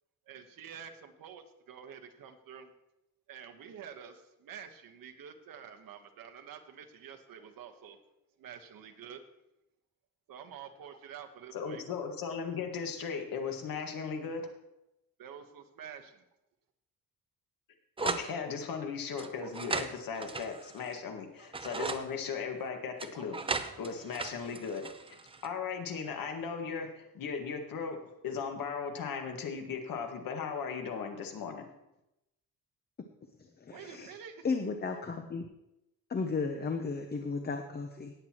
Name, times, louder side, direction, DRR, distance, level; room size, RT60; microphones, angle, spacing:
voice 1, 0.3-2.7 3.3-8.0 8.4-9.2 10.3-11.8 15.2-16.2 33.7-34.4, right 8 dB, 65° right, 6 dB, 1.3 m, -48 dB
voice 2, 11.5-14.5 18.0-23.4 23.8-24.8 25.1-28.0 28.2-31.6, left 6 dB, 70° left, 3 dB, 1.8 m, -37 dB
sound 1, 18.0-18.3 19.2-21.0 21.4-22.0 23.0-25.5, right 3 dB, 15° right, 0.6 m, -37 dB
voice 3, 33.6-34.1 34.4-35.4 36.1-38.1, left 4 dB, 25° left, 5 dB, 0.8 m, -34 dB
18.0 x 8.0 x 3.0 m, 0.89 s
cardioid pair, 140°, 36 cm